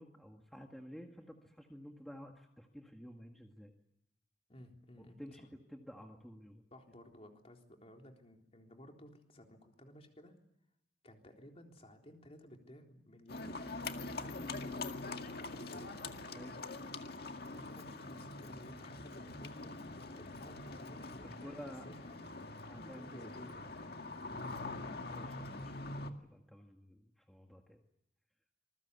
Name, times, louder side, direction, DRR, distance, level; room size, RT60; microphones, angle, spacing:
voice 1, 0.0-3.7 5.0-6.6 16.3-16.7 21.2-21.8 22.6-23.3 23.8-24.0 25.1-27.8, equal, ahead, 2 dB, 1.7 m, -52 dB
voice 2, 4.5-5.5 6.7-10.3 11.0-13.7 14.0-14.8 15.2-16.0 17.5-19.8 20.2-22.2 22.9-23.6 24.4-24.6, equal, 30° left, 3 dB, 3.7 m, -56 dB
Livestock farm animals working animals, 13.3-26.1, left 3 dB, 55° left, 2.0 m, -44 dB
26.5 x 21.5 x 8.3 m, 0.78 s
head